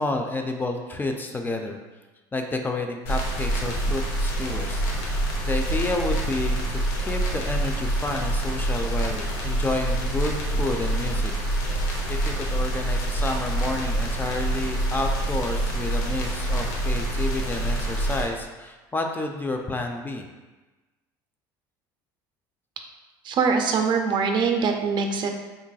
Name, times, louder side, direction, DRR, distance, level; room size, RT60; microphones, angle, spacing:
voice 1, 0.0-1.8 2.3-11.3 11.7-20.3, left 2 dB, 20° left, 3 dB, 0.3 m, -30 dB
sound 1, 3.1-18.2, right 1 dB, 85° left, 0.7 m, -26 dB
voice 2, 23.2-25.3, right 5 dB, 50° right, 4 dB, 0.4 m, -23 dB
3.9 x 2.5 x 2.3 m, 1.2 s
supercardioid pair, 85°, 10 cm